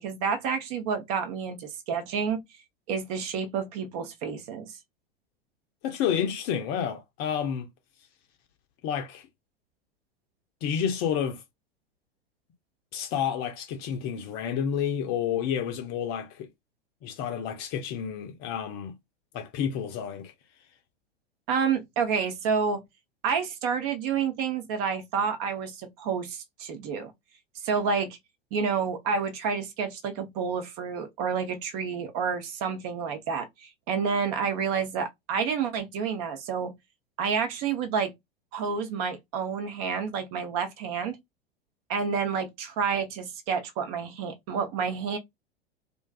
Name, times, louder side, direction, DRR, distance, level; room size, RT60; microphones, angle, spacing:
voice 1, 0.0-2.4 2.9-4.7 21.5-22.8 23.2-27.1 27.6-28.1 28.5-36.7 37.2-38.1 38.5-41.2 41.9-45.2, right 6 dB, 40° right, 0.7 m, -29 dB
voice 2, 5.8-7.7 8.8-9.3 10.6-11.4 12.9-16.5 17.0-18.9 19.3-20.3, left 8 dB, 30° left, 0.6 m, -30 dB
2.5 x 2.2 x 2.2 m
figure-of-eight pair, 90°, 31 cm